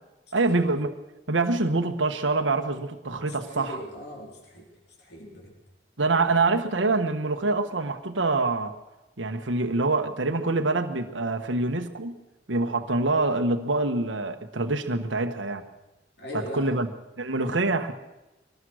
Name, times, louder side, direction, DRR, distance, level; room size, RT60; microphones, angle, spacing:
voice 1, 0.3-0.9 1.3-3.8 6.0-8.7 9.2-12.2 12.5-15.6 16.3-16.9 17.2-17.9, right 3 dB, 90° right, 5 dB, 1.3 m, -25 dB
voice 2, 3.3-4.7 5.0-5.5 6.3-6.4 16.2-16.9, left 1 dB, 60° left, 0 dB, 4.1 m, -40 dB
23.0 x 19.5 x 6.4 m, 1.0 s
head